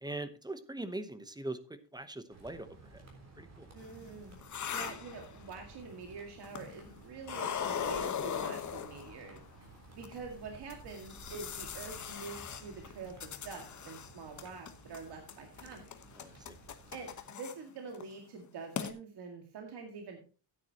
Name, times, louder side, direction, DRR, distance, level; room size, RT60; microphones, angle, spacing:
voice 1, 0.0-3.0 3.4-3.7 16.2-16.5, right 2 dB, 10° right, 12 dB, 0.8 m, -42 dB
sound 1, 2.3-17.3, right 3 dB, 35° right, 3.7 m, -55 dB
voice 2, 3.7-4.4 4.7-9.4 10.0-15.8 16.9-20.2, right 4 dB, 65° right, 3 dB, 2.0 m, -46 dB
sound 2, 3.8-5.8 6.4-6.9 7.2-9.4 10.0-10.1 10.7-14.1 14.4-15.0 15.3-17.5 17.9-18.1 18.4-18.5 18.8-18.9, left 8 dB, 40° left, 1.1 m, -39 dB
13.5 x 9.6 x 2.9 m, 0.35 s
cardioid pair, 140°, 44 cm